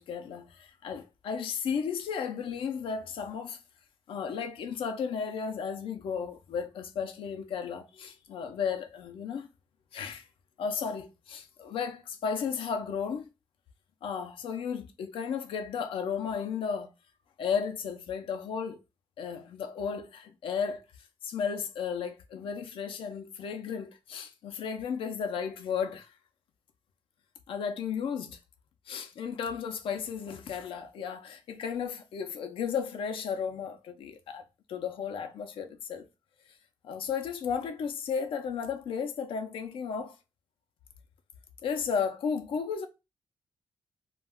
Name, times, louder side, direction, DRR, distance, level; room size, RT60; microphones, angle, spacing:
voice 1, 0.0-3.6 4.1-9.5 9.9-10.3 10.6-13.3 14.0-16.9 17.4-18.8 19.2-20.8 21.2-26.1 27.5-28.4 28.9-34.4 34.7-36.1 36.8-40.2 41.6-42.9, left 6 dB, 80° left, 0.5 m, -34 dB
2.3 x 2.2 x 3.4 m
cardioid pair, 90°, 9 cm